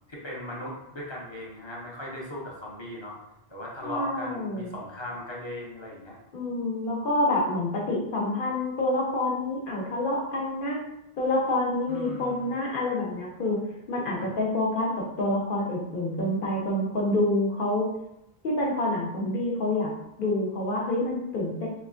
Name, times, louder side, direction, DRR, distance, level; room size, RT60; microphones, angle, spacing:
voice 1, 0.1-3.2 3.5-6.2 11.9-12.5 14.2-14.3, left 1 dB, 30° left, -5 dB, 0.7 m, -38 dB
voice 2, 3.8-4.8 6.3-10.8 11.2-13.6 13.9-14.9 15.2-17.9 18.4-19.9 20.2-21.7, left 1 dB, 55° left, -2 dB, 1.0 m, -27 dB
3.4 x 3.1 x 2.5 m, 0.85 s
omnidirectional pair, 1.1 m